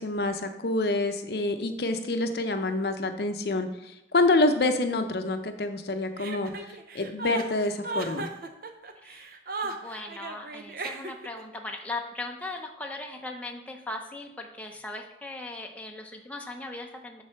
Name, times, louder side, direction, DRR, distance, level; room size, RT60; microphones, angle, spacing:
voice 1, 0.0-6.5 6.9-8.3, left 2 dB, 65° left, 7 dB, 0.6 m, -27 dB
Chuckle chortle, 6.2-11.4, right 3 dB, 55° right, 0.7 m, -35 dB
voice 2, 9.0-9.3 9.6-17.2, left 2 dB, 10° left, 1 dB, 0.6 m, -38 dB
7.6 x 4.0 x 5.7 m, 0.86 s
head